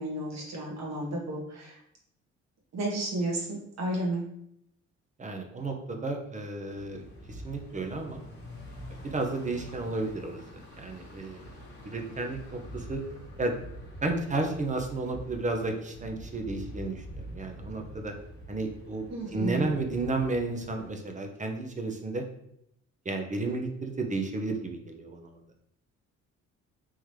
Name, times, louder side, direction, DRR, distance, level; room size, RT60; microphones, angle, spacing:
voice 1, 0.0-1.8 2.7-4.3 19.1-19.7, right 1 dB, 60° right, -3 dB, 1.4 m, -32 dB
voice 2, 5.2-8.2 9.0-10.4 10.8-11.5 11.8-13.0 13.4-13.5 14.0-17.0 17.3-18.1 18.5-19.0 19.3-22.2 23.1-25.4, right 3 dB, 25° right, 3 dB, 0.6 m, -32 dB
sound 1, 6.7-20.9, equal, 35° left, 1.4 m, -45 dB
3.7 x 2.9 x 3.2 m, 0.75 s
cardioid pair, 90°, 30 cm